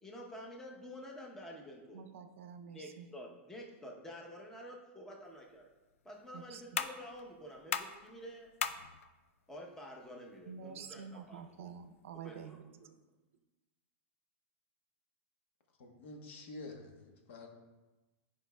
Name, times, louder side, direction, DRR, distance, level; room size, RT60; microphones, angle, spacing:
voice 1, 0.0-2.0 2.7-5.6 6.0-8.5 9.5-11.4 12.2-12.6, equal, 5° left, -1 dB, 0.8 m, -49 dB
voice 2, 1.9-3.1 6.3-6.6 10.5-13.0, right 7 dB, 80° right, 9 dB, 0.6 m, -48 dB
sound 1, 5.2-12.2, left 8 dB, 90° left, 0.4 m, -44 dB
voice 3, 15.8-17.5, left 2 dB, 65° left, 2 dB, 1.2 m, -48 dB
10.5 x 5.1 x 2.3 m, 1.2 s
supercardioid pair, 165°, 7 cm